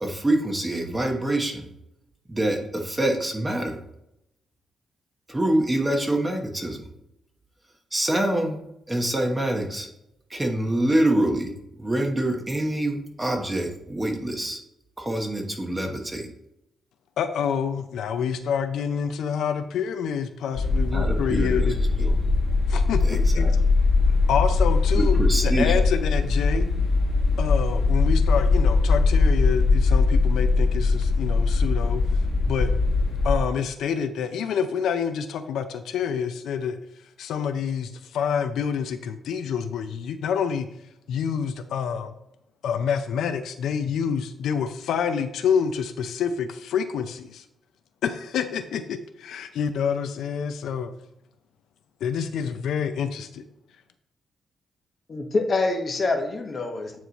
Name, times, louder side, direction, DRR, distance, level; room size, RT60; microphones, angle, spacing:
voice 1, 0.0-1.6 2.3-3.8 5.3-6.8 7.9-8.6 8.9-9.9 10.3-11.5 11.8-14.6 15.0-16.3 20.9-22.1 23.0-23.5 24.9-25.8, right 1 dB, 15° right, 3 dB, 1.1 m, -25 dB
voice 2, 17.2-21.8 22.7-23.5 24.3-26.7 27.4-32.0 32.5-32.7 33.2-36.8 37.2-40.7 41.1-42.1 42.6-47.4 48.0-50.9 52.0-53.4, left 7 dB, 85° left, 9 dB, 0.5 m, -27 dB
sound 1, 20.5-33.4, left 3 dB, 60° left, 1.2 m, -21 dB
voice 3, 55.1-57.0, left 3 dB, 40° left, 4 dB, 1.0 m, -25 dB
8.9 x 3.1 x 4.0 m, 0.82 s
cardioid pair, 105°, 0 cm